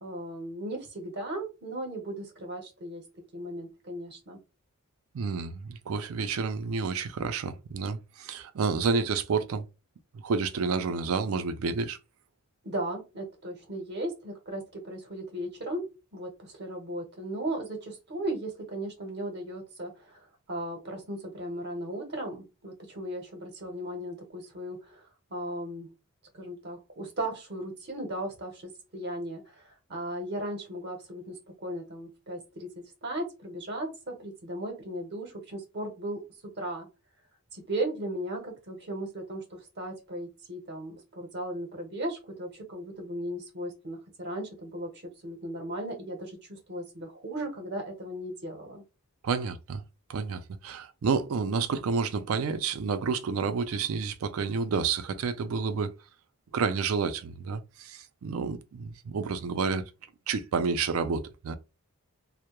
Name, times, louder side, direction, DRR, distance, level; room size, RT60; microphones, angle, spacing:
voice 1, 0.0-3.0 3.3-4.4 12.6-15.9 16.1-20.2 20.5-25.0 25.3-25.9 26.3-36.2 36.6-36.9 37.5-48.8, right 1 dB, 50° right, 0.7 m, -36 dB
voice 2, 5.1-9.7 10.1-12.0 49.2-49.8 50.1-55.9 56.5-59.9 60.3-61.6, right 5 dB, 75° right, 0.4 m, -30 dB
2.2 x 2.0 x 2.9 m
head